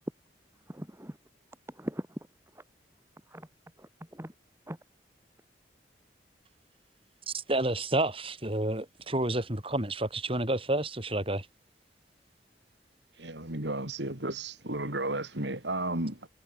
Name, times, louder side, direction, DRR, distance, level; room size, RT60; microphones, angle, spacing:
voice 1, 0.7-1.2 1.7-2.3 2.5-2.6 3.3-3.5 3.8-4.3 4.7-4.8, equal, 15° right, 3.5 m, -40 dB
voice 2, 7.3-11.5, right 1 dB, 30° right, 6.6 m, -30 dB
voice 3, 13.1-16.3, right 2 dB, 90° right, 5.1 m, -33 dB
head